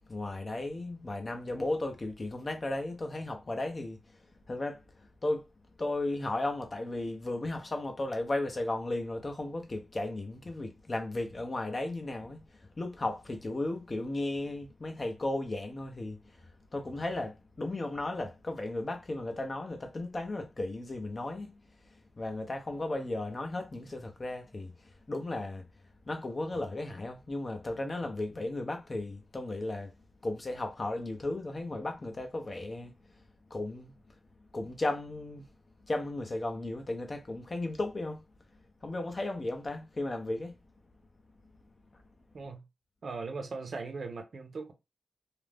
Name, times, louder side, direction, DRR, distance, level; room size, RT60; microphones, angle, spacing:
voice 1, 0.1-4.0 4.5-5.4 5.8-12.4 12.8-21.6 22.2-24.7 25.1-25.6 26.1-29.9 30.2-32.9 33.5-33.9 34.5-35.5 35.9-38.2 38.8-40.6, left 2 dB, 30° left, 0.5 m, -35 dB
voice 2, 43.0-44.7, right 4 dB, 60° right, 0.7 m, -39 dB
2.4 x 2.0 x 3.3 m
wide cardioid pair, 110°, 0 cm